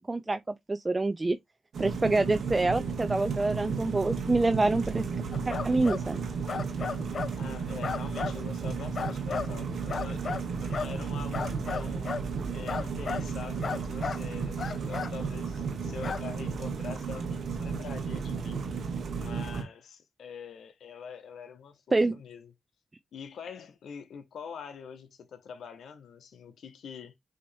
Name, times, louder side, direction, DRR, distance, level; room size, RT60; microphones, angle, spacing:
voice 1, 0.1-0.4 0.7-1.4 1.8-5.0 5.5-6.2 21.9-22.2, right 2 dB, 30° right, 0.4 m, -26 dB
sound 1, 1.7-19.6, right 5 dB, 75° right, 1.1 m, -33 dB
sound 2, 5.3-6.0 6.5-7.3 7.8-8.4 8.9-9.5 9.9-10.9 11.3-12.3 12.7-13.3 13.6-14.2 14.6-15.1 16.0-16.2, left 6 dB, 65° left, 0.3 m, -34 dB
voice 2, 7.4-10.2 10.6-12.2 12.5-18.6 19.2-22.5 23.1-27.1, left 6 dB, 80° left, 0.8 m, -44 dB
6.2 x 2.9 x 2.7 m
cardioid pair, 55°, 0 cm